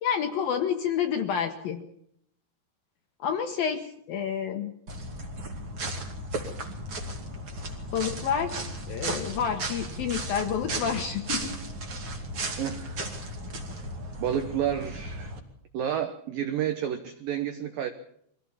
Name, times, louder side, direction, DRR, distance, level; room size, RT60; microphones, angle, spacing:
voice 1, 0.0-1.8 3.2-4.7 7.9-8.6 8.9-11.6, left 7 dB, 70° left, 7 dB, 2.3 m, -29 dB
sound 1, 4.9-15.4, right 1 dB, 35° right, 2.5 m, -35 dB
voice 2, 12.6-13.0 14.2-15.3 15.7-17.9, right 9 dB, 80° right, 8 dB, 2.0 m, -30 dB
23.5 x 16.0 x 7.3 m, 0.71 s
omnidirectional pair, 5.6 m